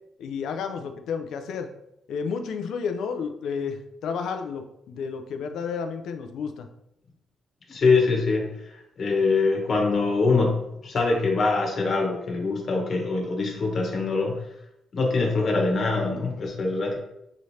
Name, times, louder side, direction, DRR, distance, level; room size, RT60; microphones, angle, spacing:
voice 1, 0.2-1.7 2.1-6.7, left 6 dB, 75° left, 7 dB, 0.5 m, -31 dB
voice 2, 7.7-14.4 14.9-17.0, left 3 dB, 50° left, 1 dB, 1.3 m, -24 dB
6.0 x 3.1 x 2.8 m, 0.81 s
cardioid pair, 90°, 0 cm